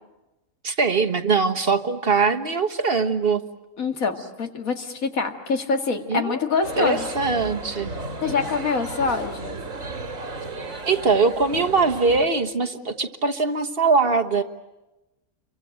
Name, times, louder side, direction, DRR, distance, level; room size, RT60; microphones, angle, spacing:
voice 1, 0.6-3.4 6.1-6.4 6.8-7.9 10.9-14.4, right 4 dB, 45° right, 6 dB, 1.5 m, -22 dB
voice 2, 3.8-7.1 8.2-9.6, left 4 dB, 80° left, 5 dB, 2.5 m, -25 dB
sound 1, 6.6-12.3, right 2 dB, 70° right, 2.6 m, -34 dB
28.5 x 24.0 x 7.7 m, 1.0 s
omnidirectional pair, 1.4 m